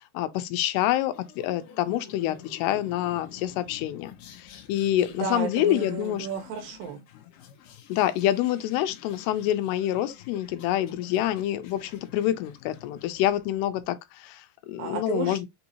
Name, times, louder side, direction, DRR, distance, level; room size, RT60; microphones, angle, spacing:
voice 1, 0.1-6.3 7.9-15.5, left 12 dB, 85° left, 2.7 m, -27 dB
sound 1, 1.1-13.8, left 9 dB, 70° left, 2.2 m, -49 dB
voice 2, 5.2-7.0 14.8-15.5, right 6 dB, 75° right, 2.4 m, -33 dB
6.0 x 2.7 x 2.8 m
omnidirectional pair, 4.6 m